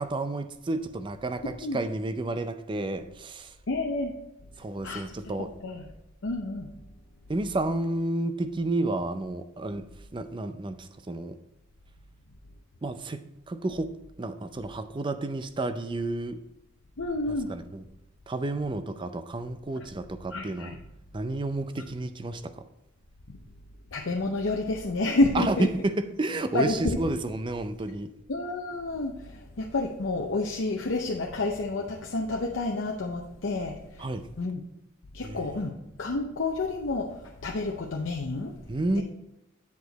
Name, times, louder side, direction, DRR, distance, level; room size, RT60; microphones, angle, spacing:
voice 1, 0.0-3.6 4.6-5.5 7.3-11.4 12.8-13.9 14.2-16.4 17.5-17.8 18.3-20.8 21.1-22.5 25.3-28.1 34.0-34.3 35.2-35.5 38.7-39.0, right 2 dB, 25° right, 10 dB, 0.4 m, -31 dB
voice 2, 1.4-1.8 3.7-4.1 4.8-5.0 5.6-5.9 6.2-6.7 17.0-17.5 20.3-20.8 23.3-23.4 23.9-25.7 26.5-27.0 28.3-34.1 34.4-34.6 35.1-38.6 39.0-39.1, left 2 dB, 70° left, 1 dB, 0.7 m, -29 dB
8.2 x 4.9 x 4.0 m, 0.90 s
head